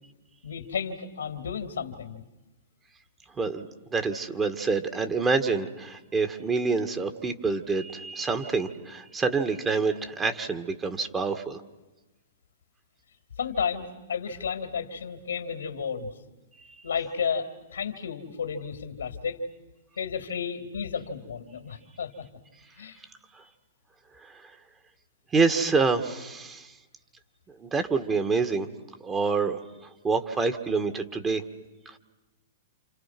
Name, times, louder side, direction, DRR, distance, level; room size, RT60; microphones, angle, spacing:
voice 1, 0.4-2.2 13.4-16.1 16.8-19.4 20.0-22.3 22.8-23.0, left 6 dB, 80° left, 8 dB, 3.0 m, -32 dB
voice 2, 3.4-11.6 25.3-26.7 27.6-28.7 29.0-29.6 30.0-31.4 31.9-32.0, right 4 dB, 20° right, 7 dB, 1.9 m, -27 dB
29.5 x 28.0 x 6.1 m, 1.1 s
hypercardioid pair, 115°, 0 cm